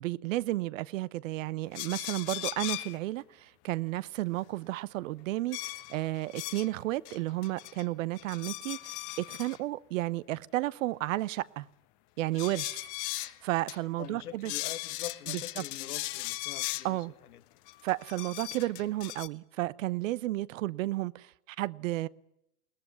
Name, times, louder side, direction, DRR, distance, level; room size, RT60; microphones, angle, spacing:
voice 1, 0.0-11.7 12.2-12.8 13.2-14.5 15.3-15.4 16.8-17.1 17.8-22.1, right 17 dB, 60° right, 0.9 m, -32 dB
sound 1, 1.7-3.0 5.5-6.7 7.1-7.8 8.1-9.6 12.3-13.4 13.7-13.8 14.0-14.1 14.5-16.9 17.7-19.3, left 18 dB, 45° left, 1.3 m, -38 dB
voice 2, 14.0-17.4, left 10 dB, 75° left, 1.8 m, -44 dB
21.5 x 19.5 x 9.5 m
hypercardioid pair, 105°, 45 cm